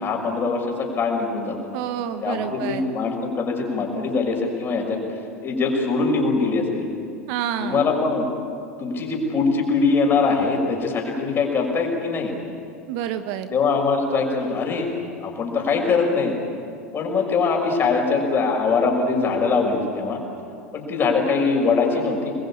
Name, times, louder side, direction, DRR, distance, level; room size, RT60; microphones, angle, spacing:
voice 1, 0.0-1.6 2.2-5.0 5.4-6.9 7.6-8.3 8.8-12.3 13.5-14.9 15.2-16.3 16.9-20.2 20.7-22.3, left 4 dB, 30° left, 1 dB, 6.2 m, -22 dB
voice 2, 1.7-3.0 7.3-7.8 12.9-13.6, right 10 dB, 50° right, 9 dB, 1.4 m, -28 dB
27.5 x 21.5 x 8.8 m, 2.5 s
figure-of-eight pair, 80°, 8 cm